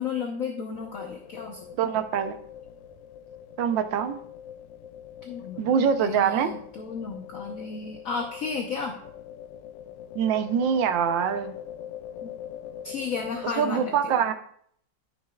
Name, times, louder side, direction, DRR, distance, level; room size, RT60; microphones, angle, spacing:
voice 1, 0.0-2.0 5.2-9.0 12.2-12.3 12.8-14.2, left 5 dB, 55° left, 3 dB, 1.1 m, -34 dB
sound 1, 0.7-13.5, left 9 dB, 80° left, 1.3 m, -43 dB
voice 2, 1.8-2.4 3.6-4.2 5.6-6.5 10.1-11.6 13.6-14.3, right 7 dB, 85° right, 9 dB, 1.5 m, -24 dB
13.5 x 6.5 x 2.3 m, 0.64 s
omnidirectional pair, 2.0 m